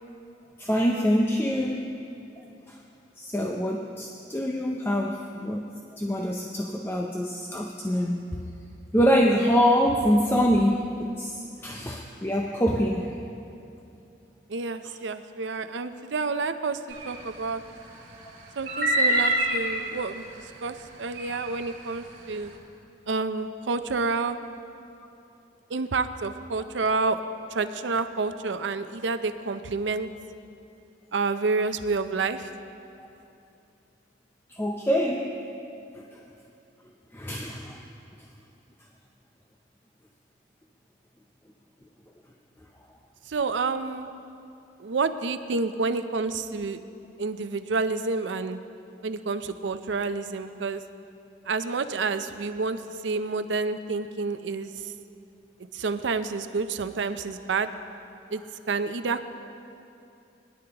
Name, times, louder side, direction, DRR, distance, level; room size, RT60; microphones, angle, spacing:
voice 1, 0.6-1.8 2.7-2.8 3.2-8.4 8.9-13.1 33.0-33.1 34.5-35.3 37.1-37.8, equal, 15° left, 1 dB, 0.5 m, -25 dB
voice 2, 14.5-17.6 18.6-22.5 23.1-24.4 25.7-27.2 27.5-30.1 31.1-32.5 43.3-44.1 44.8-46.8 47.2-48.6 49.0-50.8 51.5-54.9 55.7-57.7 58.3-58.4 58.7-59.3, right 4 dB, 80° right, 10 dB, 0.6 m, -29 dB
sound 1, 16.9-17.1 18.7-19.7 21.2-21.5, right 1 dB, 60° right, 2.5 m, -24 dB
20.5 x 11.0 x 2.9 m, 2.7 s
head